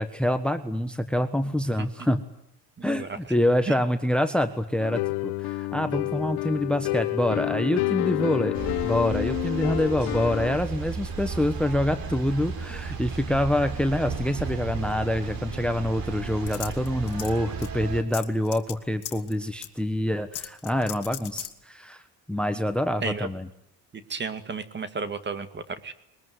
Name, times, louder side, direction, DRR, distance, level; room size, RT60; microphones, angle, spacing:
voice 1, 0.0-2.2 2.8-8.5 8.8-22.0 22.3-23.5, left 1 dB, 5° left, 11 dB, 1.3 m, -26 dB
voice 2, 2.8-3.3 3.7-3.8 23.0-23.3 23.9-25.9, right 4 dB, 30° right, 11 dB, 2.1 m, -33 dB
sound 1, 4.8-10.6, left 21 dB, 85° left, 1.0 m, -29 dB
sound 2, 8.5-18.0, right 5 dB, 65° right, 4.1 m, -34 dB
sound 3, 16.5-17.4 17.6-17.7 18.1-18.7 19.0-19.3 19.6-19.7 20.3-21.5, left 11 dB, 50° left, 2.2 m, -36 dB
22.0 x 21.0 x 9.5 m, 0.78 s
cardioid pair, 125°, 38 cm